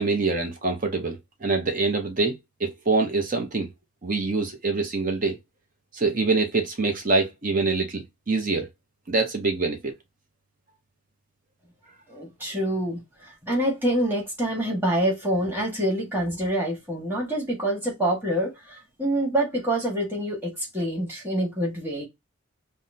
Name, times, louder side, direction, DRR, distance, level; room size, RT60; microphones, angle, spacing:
voice 1, 0.0-3.7 4.0-5.4 5.9-8.7 9.1-9.9, right 3 dB, 40° right, 0.7 m, -25 dB
voice 2, 12.1-22.0, right 1 dB, 10° right, 1.5 m, -26 dB
5.5 x 2.1 x 2.7 m
head